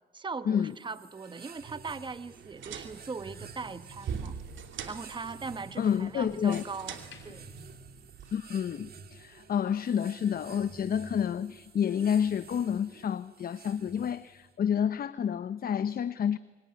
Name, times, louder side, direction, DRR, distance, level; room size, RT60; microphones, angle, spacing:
voice 1, 0.1-4.4 4.9-7.0 7.2-7.5, right 4 dB, 25° right, 13 dB, 1.1 m, -40 dB
sound 1, 0.7-14.5, right 5 dB, 50° right, 2.1 m, -51 dB
sound 2, 2.4-8.3, right 6 dB, 70° right, 2.8 m, -43 dB
voice 2, 5.8-6.6 8.3-16.4, left 8 dB, 50° left, 14 dB, 0.8 m, -29 dB
sound 3, 6.9-8.8 9.1-9.4, left 7 dB, 70° left, 5.6 m, -59 dB
25.0 x 23.5 x 9.6 m, 1.4 s
cardioid pair, 90°, 20 cm